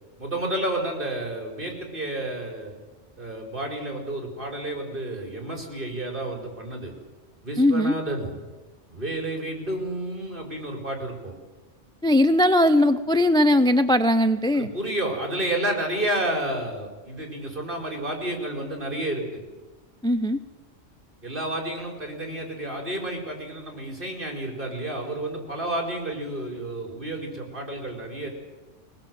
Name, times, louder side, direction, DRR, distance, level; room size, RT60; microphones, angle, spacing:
voice 1, 0.2-2.7 3.2-6.9 7.4-8.4 8.9-11.3 14.5-19.4 21.2-28.3, right 1 dB, 45° right, 2 dB, 4.8 m, -30 dB
voice 2, 7.6-7.9 12.0-14.7 20.0-20.4, left 1 dB, 5° left, 9 dB, 0.4 m, -19 dB
21.5 x 20.5 x 7.7 m, 1.2 s
omnidirectional pair, 1.3 m